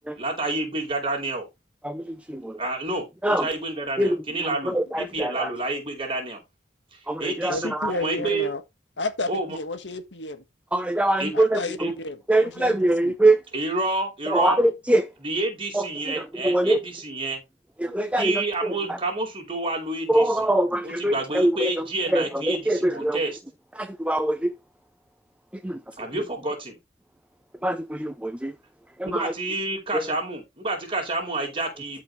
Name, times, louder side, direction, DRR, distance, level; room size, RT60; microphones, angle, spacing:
voice 1, 0.1-1.5 2.6-6.4 6.9-8.5 9.3-9.6 11.2-11.4 11.8-11.9 13.5-14.6 15.2-17.4 18.2-20.5 20.8-23.3 26.0-26.8 29.1-32.0, right 2 dB, 30° right, 4.8 m, -29 dB
voice 2, 1.8-2.6 3.2-3.5 4.0-5.5 7.1-7.9 10.7-11.9 12.3-13.4 14.3-15.1 15.7-16.8 17.8-19.0 20.1-23.2 23.7-24.5 25.5-26.0 27.6-28.6 29.0-29.3 29.9-30.2, right 1 dB, 5° right, 0.8 m, -24 dB
voice 3, 7.5-8.6 9.0-10.4 11.3-13.1, left 2 dB, 70° left, 1.8 m, -32 dB
13.0 x 5.9 x 3.3 m
head